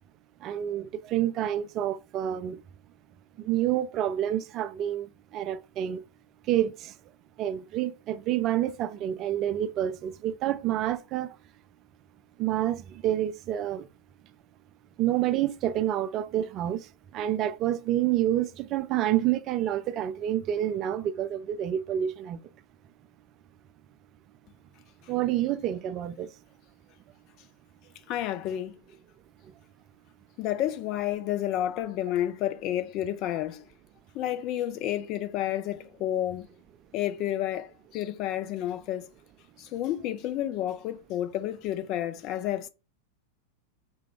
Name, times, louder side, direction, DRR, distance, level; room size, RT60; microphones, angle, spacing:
voice 1, 0.4-2.6 3.4-5.1 5.3-6.0 6.5-6.9 7.4-11.3 12.4-13.9 15.0-16.8 17.1-22.4 25.1-26.3, right 12 dB, 35° right, 0.3 m, -28 dB
voice 2, 28.1-28.8 30.4-33.6 34.1-36.5 36.9-39.1 39.6-42.7, left 12 dB, 40° left, 0.5 m, -30 dB
4.6 x 2.2 x 3.6 m
figure-of-eight pair, 90°, 0 cm